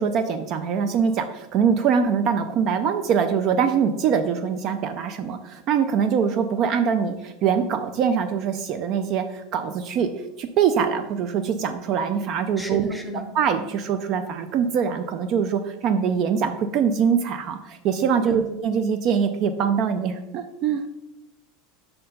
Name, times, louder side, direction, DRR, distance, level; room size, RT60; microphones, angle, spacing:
voice 1, 0.0-10.1 10.4-12.9 13.3-20.8, right 7 dB, 40° right, 9 dB, 0.4 m, -23 dB
voice 2, 12.6-13.3 18.2-18.5, equal, ahead, 4 dB, 0.7 m, -32 dB
5.5 x 4.4 x 5.3 m, 0.97 s
supercardioid pair, 160°, 0 cm